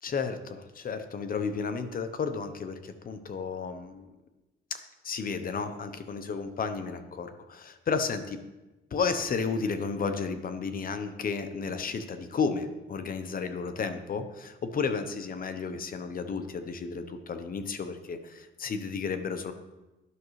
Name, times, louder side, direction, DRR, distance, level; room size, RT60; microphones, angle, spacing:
voice 1, 0.0-4.1 4.7-8.4 8.9-19.5, left 5 dB, 45° left, 9 dB, 0.8 m, -33 dB
11.0 x 6.0 x 3.2 m, 1.1 s
cardioid pair, 90°, 20 cm